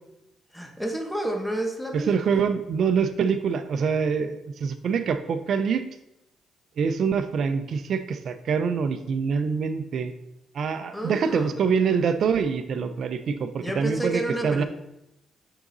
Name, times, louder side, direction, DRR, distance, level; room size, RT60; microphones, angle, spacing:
voice 1, 0.5-2.4 10.9-11.6 13.6-14.6, right 1 dB, 5° left, 3 dB, 1.2 m, -30 dB
voice 2, 1.9-5.8 6.8-10.1 10.5-14.6, right 6 dB, 60° right, 10 dB, 0.6 m, -25 dB
9.0 x 3.9 x 4.0 m, 0.86 s
cardioid pair, 90°, 0 cm